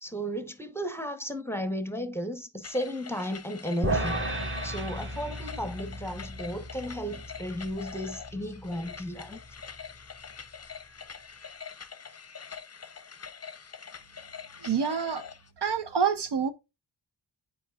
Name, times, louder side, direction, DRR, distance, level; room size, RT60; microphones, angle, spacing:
voice 1, 0.0-4.2 4.6-9.4, equal, 5° left, 0.9 m, -34 dB
sound 1, 2.6-15.5, left 6 dB, 35° left, 0.6 m, -45 dB
sound 2, 3.8-10.2, right 1 dB, 25° right, 1.2 m, -35 dB
voice 2, 14.6-15.2 15.6-16.5, right 6 dB, 60° right, 0.7 m, -27 dB
8.4 x 5.0 x 2.3 m
cardioid pair, 45°, 46 cm